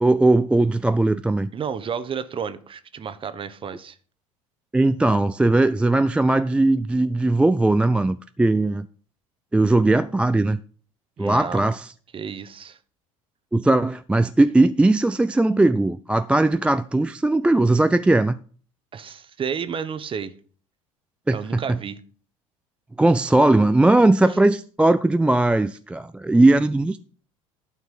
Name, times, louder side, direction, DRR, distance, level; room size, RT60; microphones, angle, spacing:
voice 1, 0.0-1.5 4.7-8.9 9.5-10.6 11.2-11.9 13.5-18.4 21.3-21.8 23.0-27.0, right 2 dB, 5° right, 0.3 m, -19 dB
voice 2, 1.5-4.0 11.2-11.6 12.1-12.8 18.9-20.3 21.3-22.0, right 7 dB, 30° right, 0.9 m, -31 dB
12.0 x 4.5 x 5.6 m
figure-of-eight pair, 65°, 17 cm